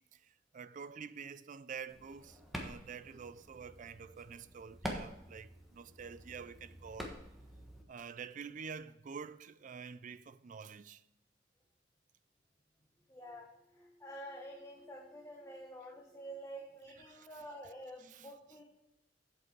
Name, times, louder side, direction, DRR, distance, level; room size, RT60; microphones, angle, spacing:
voice 1, 0.0-7.2 7.9-11.0 16.9-17.3 18.0-18.3, right 6 dB, 45° right, 0.4 m, -48 dB
sound 1, 1.9-7.8, equal, ahead, 1.3 m, -47 dB
voice 2, 13.1-18.6, right 1 dB, 15° left, 1.1 m, -49 dB
8.1 x 7.8 x 4.6 m
head